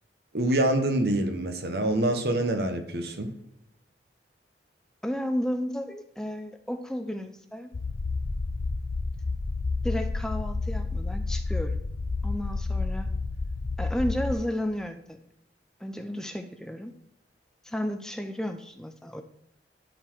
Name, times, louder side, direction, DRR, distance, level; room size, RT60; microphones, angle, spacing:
voice 1, 0.3-3.3, right 1 dB, 65° right, 6 dB, 1.2 m, -26 dB
voice 2, 5.0-7.7 9.8-11.8 12.2-13.1 13.8-15.2 15.8-16.9 17.6-19.2, equal, 5° left, 7 dB, 0.5 m, -32 dB
sound 1, 7.7-14.3, left 3 dB, 65° left, 0.5 m, -30 dB
12.0 x 4.3 x 4.6 m, 0.79 s
head